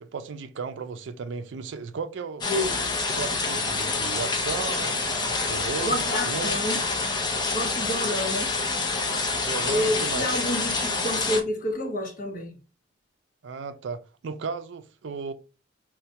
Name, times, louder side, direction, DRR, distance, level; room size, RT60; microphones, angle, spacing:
voice 1, 0.0-2.4 3.0-6.0 6.3-6.6 9.4-10.3 13.4-15.3, right 5 dB, 75° right, 0.4 m, -35 dB
sound 1, 2.4-11.4, left 3 dB, 25° left, 0.5 m, -27 dB
voice 2, 5.8-6.8 7.5-8.5 9.7-12.5, left 1 dB, 45° left, 0.9 m, -28 dB
4.3 x 2.1 x 2.8 m
head